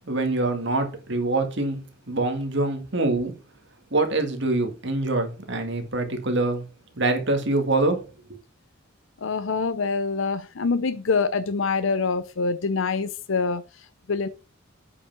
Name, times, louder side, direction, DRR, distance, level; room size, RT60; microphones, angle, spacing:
voice 1, 0.1-1.8 2.1-3.3 3.9-6.6 7.0-8.1, right 2 dB, 55° right, 2.1 m, -24 dB
voice 2, 9.2-13.6 14.1-14.3, left 4 dB, 65° left, 0.6 m, -25 dB
8.3 x 5.7 x 6.0 m
head